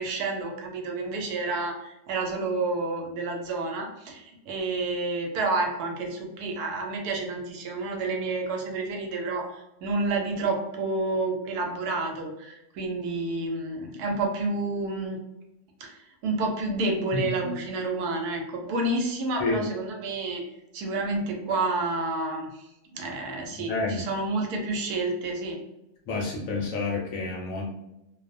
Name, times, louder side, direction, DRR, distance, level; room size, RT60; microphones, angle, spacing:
voice 1, 0.0-15.2 15.8-20.4 20.7-22.7 22.9-25.6, right 3 dB, 80° right, 2 dB, 1.1 m, -29 dB
voice 2, 17.1-17.5 19.4-19.7 23.6-24.1 26.1-27.7, left 3 dB, 65° left, -2 dB, 0.9 m, -29 dB
2.6 x 2.0 x 2.5 m, 0.90 s
omnidirectional pair, 1.7 m